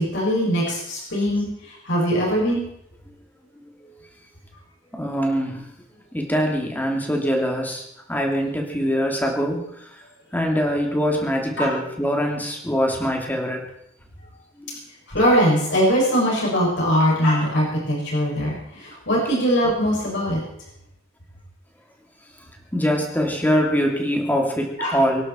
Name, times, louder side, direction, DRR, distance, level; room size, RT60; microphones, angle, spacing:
voice 1, 0.0-1.5 1.9-2.6 11.6-11.7 15.1-20.4 24.8-25.0, equal, 60° left, -4 dB, 7.2 m, -21 dB
voice 2, 4.9-5.7 6.1-9.9 10.3-13.6 14.6-14.8 22.7-25.2, equal, 10° left, 1 dB, 2.9 m, -23 dB
24.5 x 11.5 x 4.6 m, 0.78 s
head